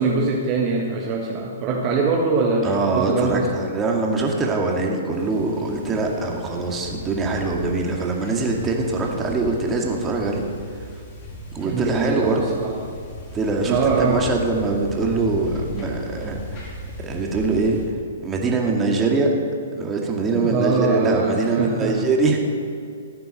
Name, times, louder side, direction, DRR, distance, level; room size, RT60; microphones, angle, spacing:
voice 1, 0.0-3.5 11.6-12.8 13.6-14.2 20.3-22.0, right 4 dB, 35° right, -1 dB, 1.6 m, -23 dB
voice 2, 2.6-10.4 11.5-12.4 13.3-17.8 18.2-19.4 19.8-22.4, right 3 dB, 20° right, 0 dB, 2.2 m, -23 dB
sound 1, 5.1-17.9, left 1 dB, 40° left, 3.9 m, -37 dB
14.5 x 9.3 x 6.5 m, 2.3 s
hypercardioid pair, 125°, 0 cm